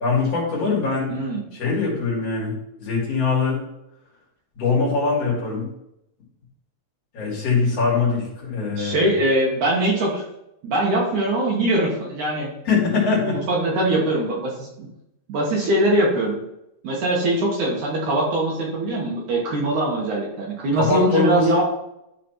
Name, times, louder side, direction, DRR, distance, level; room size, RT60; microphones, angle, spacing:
voice 1, 0.0-1.1 1.5-2.5 2.8-3.6 4.6-5.7 7.1-9.1 12.6-13.4 20.8-21.6, left 4 dB, 45° left, -5 dB, 3.5 m, -22 dB
voice 2, 1.1-1.4 8.7-10.2 10.6-12.5 13.3-14.9 15.3-16.4 16.8-21.6, right 1 dB, 60° right, -2 dB, 2.5 m, -22 dB
12.5 x 4.1 x 4.4 m, 0.85 s
omnidirectional pair, 4.4 m